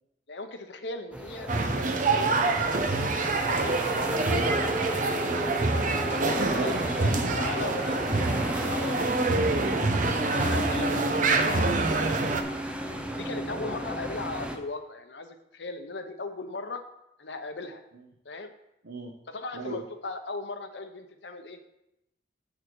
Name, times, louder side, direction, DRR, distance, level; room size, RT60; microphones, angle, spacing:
voice 1, 0.3-2.6 3.4-3.7 5.9-9.1 9.4-12.3 13.1-16.8 17.2-17.8 18.2-18.5 19.3-21.6, left 3 dB, 80° left, 7 dB, 0.9 m, -38 dB
sound 1, 1.1-14.6, equal, 5° right, 0.7 m, -34 dB
sound 2, 1.5-12.4, right 3 dB, 45° right, 0.8 m, -26 dB
voice 2, 3.5-5.1 13.3-13.5 18.8-19.2 19.5-19.8, right 2 dB, 90° right, 1 dB, 0.9 m, -36 dB
8.2 x 6.7 x 4.6 m, 0.86 s
head